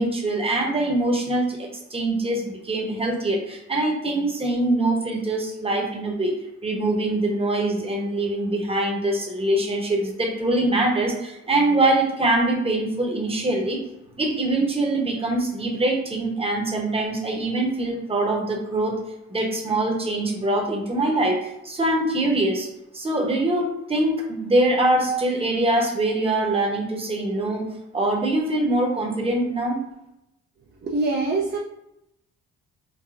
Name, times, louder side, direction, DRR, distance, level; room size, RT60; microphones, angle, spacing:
voice 1, 0.0-13.8 14.2-19.0 19.3-22.7 22.9-29.8, right 2 dB, 20° right, 0 dB, 0.8 m, -23 dB
voice 2, 30.8-31.6, right 3 dB, 35° right, 0 dB, 0.5 m, -24 dB
4.7 x 2.2 x 2.4 m, 0.85 s
cardioid pair, 90°, 30 cm